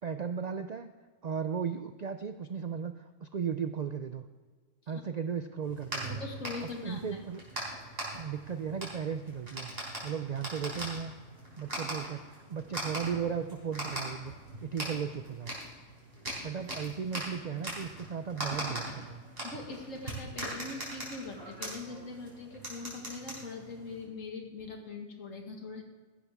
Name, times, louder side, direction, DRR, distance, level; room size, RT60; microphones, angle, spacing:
voice 1, 0.0-0.9 1.2-2.9 3.2-4.2 4.9-6.2 6.6-7.4 8.1-9.7 10.0-11.1 11.6-14.3 14.6-15.5 16.4-19.2, right 7 dB, 65° right, 9 dB, 0.4 m, -36 dB
sound 1, 5.6-24.0, right 1 dB, 50° right, 4.4 m, -41 dB
voice 2, 6.1-7.0 19.4-25.8, left 3 dB, 85° left, 3 dB, 2.1 m, -42 dB
15.0 x 11.0 x 3.5 m, 1.4 s
omnidirectional pair, 1.3 m